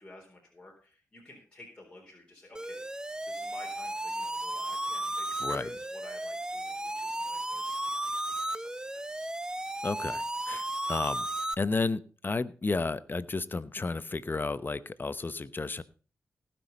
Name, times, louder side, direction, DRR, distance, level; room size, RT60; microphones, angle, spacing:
voice 1, 0.0-2.8 3.3-8.1 8.4-9.3, left 2 dB, 15° left, -2 dB, 3.9 m, -53 dB
sound 1, 2.5-11.5, right 1 dB, 15° right, 0.8 m, -34 dB
voice 2, 9.8-11.3 11.6-15.8, left 3 dB, 35° left, 15 dB, 0.9 m, -32 dB
18.5 x 6.2 x 5.4 m, 0.38 s
cardioid pair, 55°, 6 cm